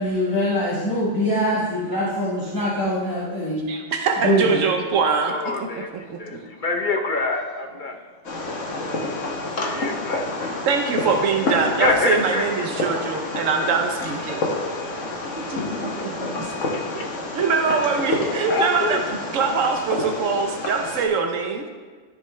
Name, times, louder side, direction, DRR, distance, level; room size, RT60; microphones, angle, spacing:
voice 1, 0.0-3.7 4.2-4.6, equal, 15° left, -7 dB, 1.5 m, -23 dB
voice 2, 3.7-5.3 5.6-5.7 5.9-6.4 10.6-14.5 15.5-15.6 16.4-16.5 17.0-17.1 17.3-21.7, right 5 dB, 90° right, 4 dB, 1.2 m, -23 dB
voice 3, 5.3-8.0 9.6-10.3 11.8-12.7 15.1-15.2 16.7-16.8 17.7-17.8 18.5-19.0, left 3 dB, 45° left, 3 dB, 1.0 m, -26 dB
Fireworks, 8.2-21.1, left 2 dB, 80° left, 1.6 m, -28 dB
13.0 x 5.3 x 3.2 m, 1.5 s
omnidirectional pair, 1.3 m